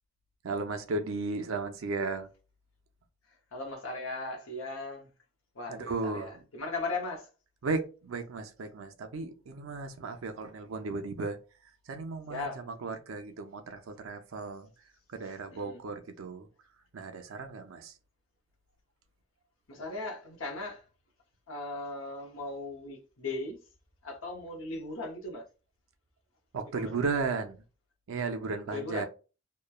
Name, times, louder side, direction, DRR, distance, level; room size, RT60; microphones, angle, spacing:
voice 1, 0.4-2.3 5.7-6.4 7.6-11.4 11.9-14.7 15.1-16.5 16.9-17.9 26.5-27.6 28.1-29.0, right 3 dB, 80° right, 0.5 m, -35 dB
voice 2, 3.5-5.1 5.5-7.3 12.3-12.6 15.2-15.8 19.7-20.9 21.5-23.6 24.0-25.4 28.7-29.1, left 2 dB, 85° left, 0.8 m, -38 dB
3.0 x 2.2 x 2.3 m
head